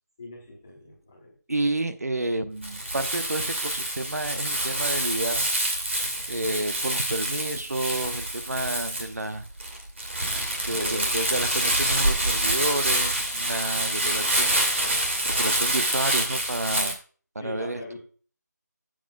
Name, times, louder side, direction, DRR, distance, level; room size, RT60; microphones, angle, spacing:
voice 1, 0.2-1.3 10.7-11.1 17.4-18.0, left 1 dB, 5° left, -4 dB, 0.9 m, -39 dB
voice 2, 1.5-5.5 6.3-9.5 10.7-14.7 15.2-17.0 17.3-18.0, right 2 dB, 60° right, 9 dB, 1.0 m, -30 dB
Crumpling crinkling, 2.6-16.9, right 1 dB, 45° right, 2.3 m, -26 dB
12.5 x 7.7 x 2.3 m, 0.40 s
figure-of-eight pair, 180°, 10 cm